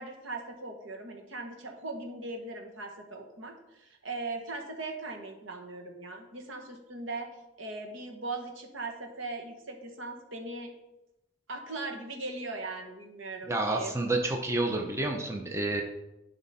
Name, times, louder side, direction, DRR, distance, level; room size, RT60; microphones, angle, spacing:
voice 1, 0.0-7.3 7.6-10.7 11.5-13.9, right 2 dB, 75° right, 3 dB, 1.4 m, -39 dB
voice 2, 13.5-15.8, right 2 dB, 15° right, 2 dB, 0.7 m, -29 dB
11.0 x 5.2 x 4.2 m, 0.94 s
head